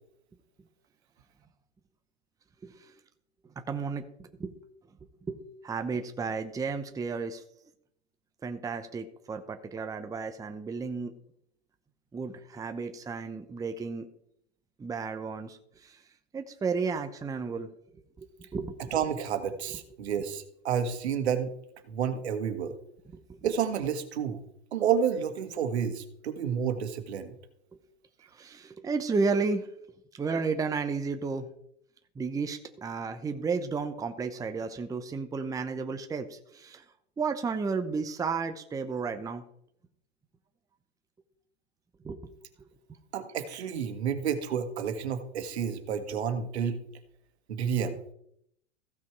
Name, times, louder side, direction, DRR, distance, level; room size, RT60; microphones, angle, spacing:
voice 1, 2.6-2.9 3.6-4.1 4.4-4.6 5.3-7.4 8.4-11.1 12.1-14.1 14.8-16.0 16.3-17.7 18.2-19.1 19.7-19.8 23.1-23.6 27.7-27.8 28.3-29.7 30.1-31.5 32.2-36.8 37.2-39.4 42.0-42.3, right 4 dB, 10° right, 7 dB, 0.8 m, -33 dB
voice 2, 18.9-21.5 21.9-22.7 23.4-24.4 24.7-27.3 43.1-46.8 47.5-48.0, right 7 dB, 75° right, 7 dB, 1.7 m, -30 dB
15.0 x 5.7 x 4.7 m, 0.72 s
hypercardioid pair, 115°, 33 cm